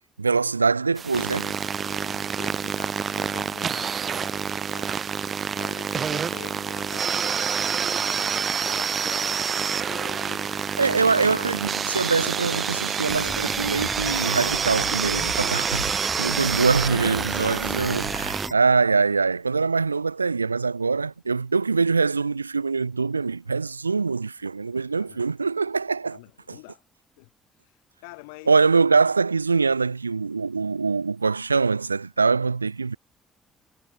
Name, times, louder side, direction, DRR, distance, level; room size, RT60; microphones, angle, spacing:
voice 1, 0.0-1.5 10.8-15.8 16.2-26.2 28.5-33.0, right 4 dB, 85° right, 0.6 m, -23 dB
sound 1, 1.0-18.5, right 7 dB, 40° right, 1.0 m, -27 dB
voice 2, 1.9-5.1 5.5-11.4 15.6-16.4 25.0-25.2 26.1-26.8 27.2-27.3 27.6-28.5, left 31 dB, 70° left, 3.3 m, -46 dB
sound 2, 13.1-18.5, equal, ahead, 6.4 m, -35 dB
figure-of-eight pair, 45°, 0 cm